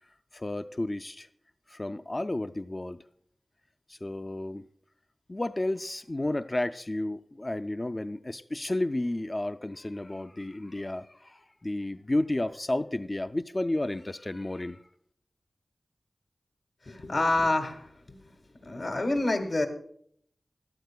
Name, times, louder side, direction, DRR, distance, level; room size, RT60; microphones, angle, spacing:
voice 1, 0.3-1.3 1.7-3.0 3.9-4.7 5.3-14.8, left 1 dB, 35° left, 11 dB, 0.3 m, -32 dB
voice 2, 16.8-18.2 18.5-19.7, left 2 dB, 70° left, 5 dB, 1.7 m, -28 dB
17.0 x 11.5 x 2.3 m, 0.66 s
cardioid pair, 50°, 0 cm